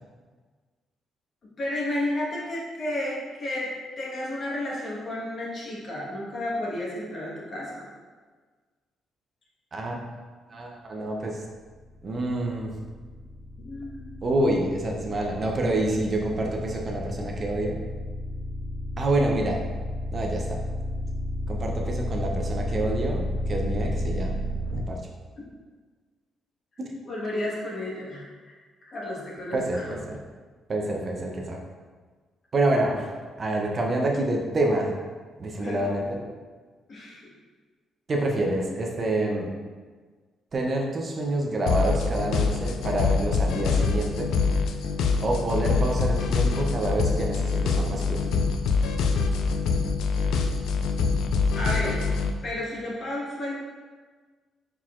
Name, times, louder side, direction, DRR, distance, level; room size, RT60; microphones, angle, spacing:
voice 1, 1.6-3.7 4.0-7.9 13.6-14.3 25.4-25.5 27.1-28.5 28.9-30.0 35.6-36.1 36.9-37.2 51.5-52.0 52.4-53.5, left 1 dB, 50° left, -5 dB, 1.3 m, -32 dB
voice 2, 9.7-10.2 10.5-11.4 12.0-12.7 14.2-17.8 19.0-19.6 20.1-20.6 21.5-24.3 24.7-25.0 29.5-30.0 30.7-31.6 32.5-34.9 35.4-36.2 38.1-39.5 40.5-44.3 45.2-48.3, right 1 dB, 40° right, 0 dB, 0.6 m, -27 dB
sound 1, 11.5-24.8, equal, 60° right, 1.2 m, -32 dB
sound 2, 41.7-52.3, left 4 dB, 80° left, 0.3 m, -25 dB
4.5 x 3.9 x 2.5 m, 1.4 s
cardioid pair, 90°, 0 cm